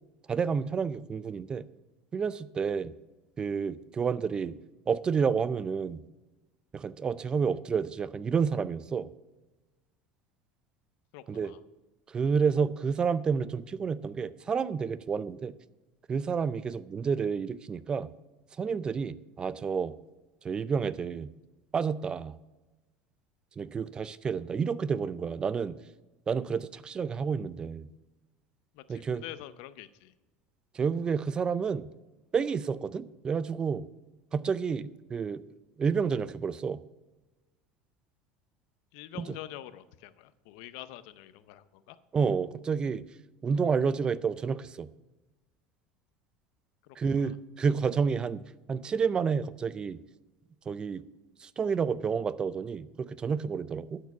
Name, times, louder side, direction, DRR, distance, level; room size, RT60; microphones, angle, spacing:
voice 1, 0.3-1.7 2.1-2.9 3.4-4.5 4.9-6.0 6.7-9.1 11.3-11.5 12.1-15.6 16.1-18.1 18.6-19.9 20.4-21.3 21.7-22.3 23.6-25.8 26.3-27.9 28.9-29.2 30.7-31.9 32.3-33.9 34.3-35.4 35.8-36.8 39.2-39.4 42.1-43.0 43.4-44.9 47.0-48.4 48.7-50.0 50.7-51.0 51.4-54.0, right 6 dB, 25° right, 17 dB, 0.4 m, -30 dB
voice 2, 11.1-11.6 28.7-30.1 38.9-42.0 46.8-47.3, left 13 dB, 70° left, 14 dB, 0.6 m, -46 dB
12.5 x 4.6 x 5.9 m, 1.1 s
supercardioid pair, 120°, 3 cm